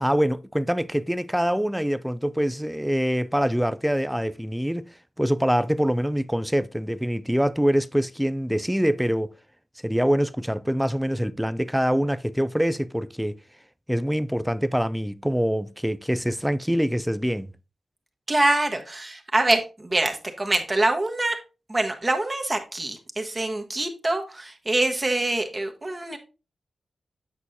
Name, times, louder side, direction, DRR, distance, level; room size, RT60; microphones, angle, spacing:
voice 1, 0.0-9.3 9.8-13.4 13.9-17.5, equal, 5° right, 0.4 m, -24 dB
voice 2, 18.3-21.4 21.7-26.2, right 2 dB, 30° right, 1.2 m, -25 dB
8.3 x 6.2 x 2.7 m
wide cardioid pair, 95°, 0 cm